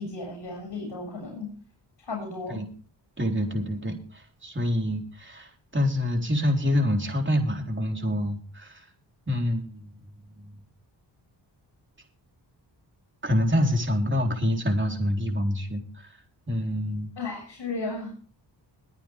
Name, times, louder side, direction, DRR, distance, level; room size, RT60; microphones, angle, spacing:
voice 1, 0.0-1.5 2.0-2.6 17.2-18.1, left 3 dB, 65° left, 1 dB, 7.1 m, -34 dB
voice 2, 3.2-8.9 9.3-9.9 10.4-10.5 13.2-16.1 16.5-17.1, left 1 dB, 25° right, 2 dB, 4.0 m, -26 dB
23.0 x 8.9 x 3.5 m, 0.40 s
wide cardioid pair, 135°, 45 cm